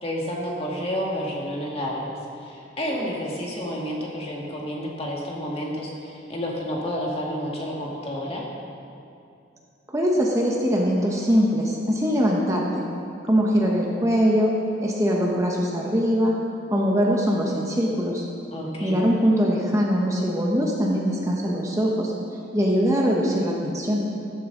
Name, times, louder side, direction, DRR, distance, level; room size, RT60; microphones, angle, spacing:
voice 1, 0.0-2.1 2.4-8.4 18.5-19.0, equal, 30° left, -2 dB, 2.0 m, -30 dB
voice 2, 9.9-12.8 13.2-14.5 14.8-16.4 16.7-18.2 18.8-22.1 22.5-24.0, equal, 15° right, -2 dB, 1.1 m, -22 dB
13.5 x 13.5 x 3.9 m, 2.6 s
head